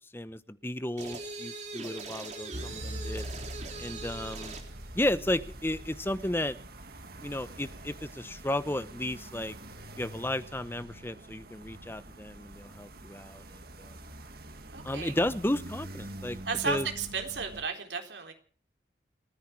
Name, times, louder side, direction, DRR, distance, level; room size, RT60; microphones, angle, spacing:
voice 1, 0.1-3.2 3.8-4.5 4.9-6.6 7.2-9.6 10.0-14.0 14.8-16.4 16.6-16.9, left 1 dB, 10° left, 13 dB, 0.9 m, -33 dB
sound 1, 1.0-4.7, right 3 dB, 40° right, 3.8 m, -41 dB
sound 2, 2.5-17.6, right 1 dB, 55° right, 2.0 m, -44 dB
voice 2, 14.7-15.1 16.5-18.3, right 5 dB, 75° right, 4 dB, 3.8 m, -33 dB
29.5 x 10.0 x 4.6 m, 0.42 s
head